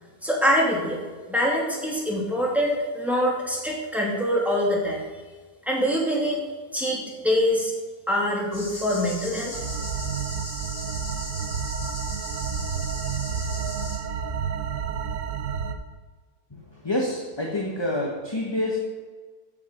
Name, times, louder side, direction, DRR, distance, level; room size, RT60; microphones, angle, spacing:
voice 1, 0.2-1.0 1.3-5.0 5.7-6.4 6.7-7.7 8.1-9.6, equal, ahead, -4 dB, 2.7 m, -24 dB
sound 1, 8.5-14.0, left 1 dB, 50° left, 3.8 m, -37 dB
sound 2, 9.5-15.7, right 6 dB, 60° right, 1.2 m, -30 dB
voice 2, 16.5-18.8, left 1 dB, 20° left, -1 dB, 1.2 m, -27 dB
13.0 x 7.5 x 5.3 m, 1.4 s
omnidirectional pair, 1.6 m